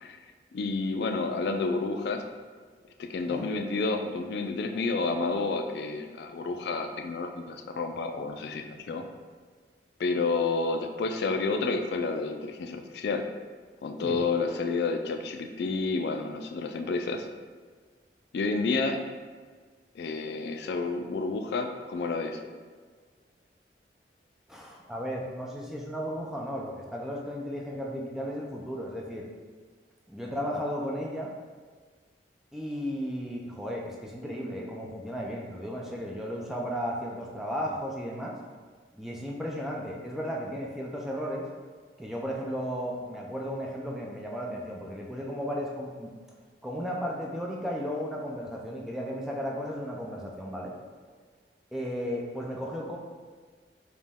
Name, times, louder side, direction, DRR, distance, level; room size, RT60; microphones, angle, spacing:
voice 1, 0.5-2.2 3.0-9.1 10.0-13.2 13.8-17.3 18.3-19.0 19.9-22.4, left 3 dB, 70° left, 5 dB, 0.3 m, -30 dB
voice 2, 24.5-29.3 30.1-31.3 32.5-38.4 38.9-41.5 42.0-46.1 46.6-50.8 51.7-53.0, equal, ahead, -2 dB, 0.4 m, -34 dB
5.1 x 2.2 x 3.4 m, 1.5 s
head